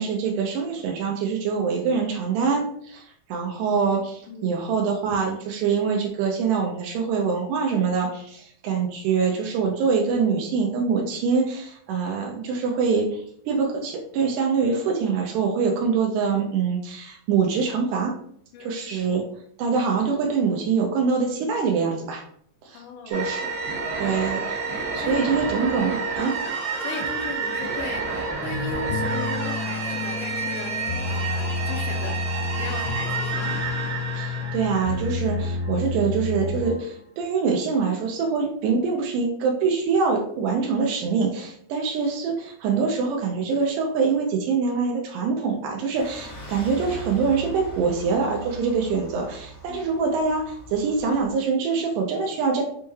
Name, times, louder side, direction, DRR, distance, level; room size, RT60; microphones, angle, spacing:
voice 1, 0.0-18.1 18.6-19.2 19.6-22.2 22.6-23.4 24.0-24.5 24.9-26.3 34.1-52.6, right 5 dB, 90° right, 1 dB, 1.8 m, -24 dB
voice 2, 4.3-4.6 18.5-19.2 22.7-23.1 24.0-24.2 25.0-25.3 26.8-32.2 32.6-33.6 49.7-49.8, left 6 dB, 90° left, 4 dB, 1.7 m, -37 dB
sound 1, 23.1-35.6, right 4 dB, 70° right, 0.9 m, -29 dB
sound 2, 28.9-37.0, left 4 dB, 65° left, 2.8 m, -30 dB
sound 3, 45.9-51.4, right 2 dB, 45° left, 1.2 m, -40 dB
6.2 x 2.3 x 3.1 m, 0.64 s
omnidirectional pair, 4.3 m